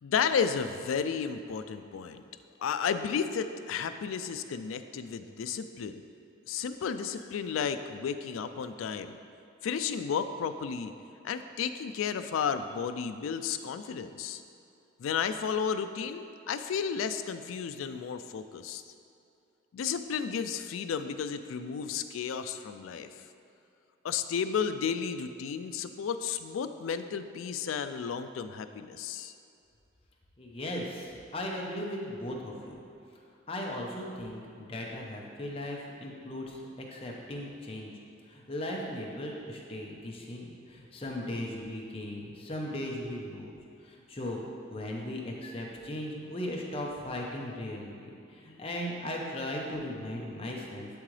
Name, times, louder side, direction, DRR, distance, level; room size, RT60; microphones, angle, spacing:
voice 1, 0.0-2.2 2.6-6.0 6.5-9.2 9.6-10.9 11.2-14.4 15.0-18.8 19.7-23.1 24.0-29.3, left 6 dB, 85° left, 10 dB, 0.3 m, -33 dB
voice 2, 30.4-32.8 33.5-36.6 36.9-37.9 38.3-43.6 43.8-44.4 44.7-47.9 48.3-50.9, left 1 dB, 30° left, -1 dB, 0.8 m, -37 dB
11.5 x 3.8 x 3.2 m, 2.6 s
head